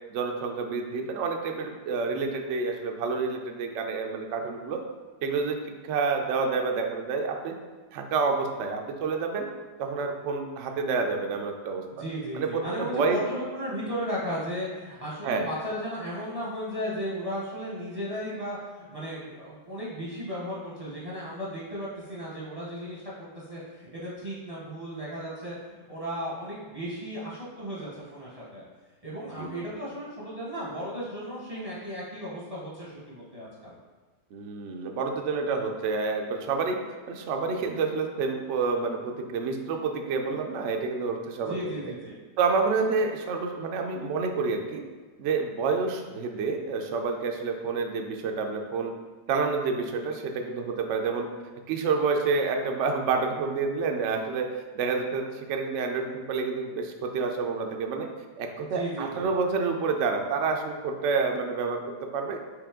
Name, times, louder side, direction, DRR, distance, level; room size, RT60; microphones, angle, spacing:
voice 1, 0.1-4.8 5.2-5.6 5.8-7.5 7.9-9.5 9.8-11.8 12.3-13.2 15.2-15.5 29.4-29.5 34.3-36.8 37.1-41.7 42.4-44.8 45.2-48.9 49.3-51.3 51.7-58.1 58.4-62.4, right 4 dB, 85° right, 3 dB, 0.6 m, -28 dB
voice 2, 11.9-28.6 29.0-33.8 41.4-42.1 58.6-59.3, equal, 40° right, -6 dB, 0.5 m, -35 dB
5.0 x 3.0 x 3.6 m, 1.4 s
omnidirectional pair, 1.9 m